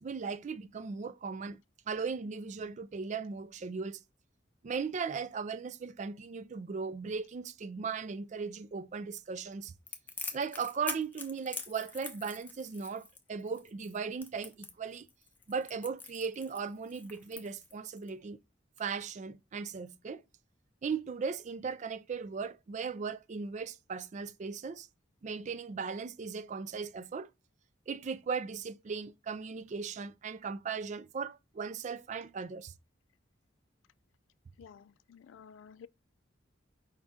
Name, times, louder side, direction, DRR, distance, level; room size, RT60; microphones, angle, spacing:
voice 1, 0.0-1.6 1.9-4.0 4.6-9.7 10.3-15.1 15.5-18.4 18.8-20.2 20.8-24.9 25.2-27.3 27.9-32.7, right 5 dB, 40° right, 0.3 m, -37 dB
Crackle, 9.9-18.1, left 4 dB, 10° left, 0.6 m, -44 dB
voice 2, 34.6-35.9, left 7 dB, 90° left, 0.3 m, -53 dB
5.0 x 2.6 x 3.5 m
head